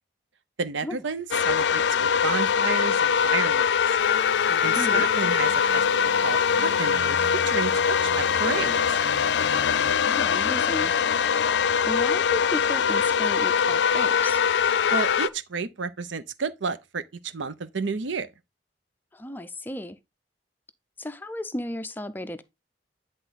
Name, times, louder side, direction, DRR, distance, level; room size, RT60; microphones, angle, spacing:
voice 1, 0.6-3.7 4.6-5.8 6.2-8.8 14.9-18.3, right 5 dB, 90° right, 0.7 m, -31 dB
sound 1, 1.3-15.3, left 7 dB, 70° left, 0.4 m, -22 dB
sound 2, 4.0-9.9, right 2 dB, 65° right, 1.4 m, -41 dB
voice 2, 4.5-5.1 10.0-10.9 11.8-14.4 19.1-20.0 21.0-22.4, left 1 dB, 10° left, 0.5 m, -34 dB
10.0 x 3.7 x 4.0 m
head